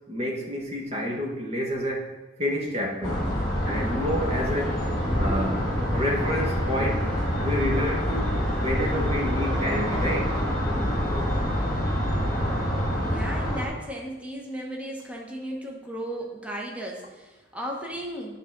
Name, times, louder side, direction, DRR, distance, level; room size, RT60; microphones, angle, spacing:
voice 1, 0.1-2.1 2.4-3.3 3.6-4.8 5.2-7.1 7.4-10.3, equal, 30° right, -1 dB, 1.3 m, -29 dB
sound 1, 3.0-13.7, equal, 20° left, 2.1 m, -26 dB
voice 2, 12.8-18.4, equal, 5° right, -2 dB, 1.1 m, -35 dB
8.9 x 3.8 x 5.9 m, 1.2 s
head